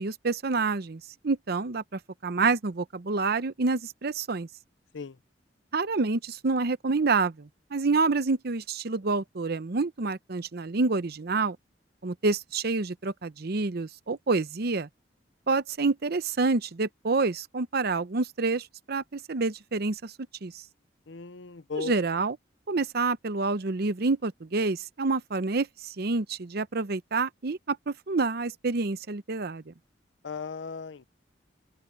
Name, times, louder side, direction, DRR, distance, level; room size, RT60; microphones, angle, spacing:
voice 1, 0.0-1.8 2.2-4.5 5.7-11.6 12.0-14.9 15.5-20.1 20.4-20.6 21.7-22.4 22.7-25.7 26.0-29.7, right 3 dB, 60° right, 0.8 m, -28 dB
voice 2, 21.1-22.0 30.2-31.1, left 5 dB, 90° left, 0.7 m, -36 dB
open air
head